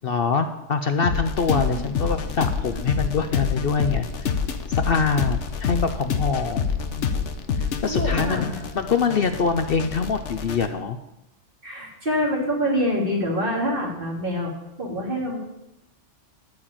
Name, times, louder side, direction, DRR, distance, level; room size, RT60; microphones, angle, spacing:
voice 1, 0.0-4.1 4.7-6.7 7.0-7.1 7.6-8.5 8.7-11.0, left 5 dB, 55° left, 8 dB, 0.8 m, -24 dB
sound 1, 1.0-10.7, left 6 dB, 70° left, 1.2 m, -27 dB
voice 2, 1.5-1.9 7.8-8.7 11.6-14.5 14.8-15.4, equal, 45° right, -2 dB, 3.1 m, -26 dB
13.0 x 4.9 x 8.8 m, 0.87 s
omnidirectional pair, 1.3 m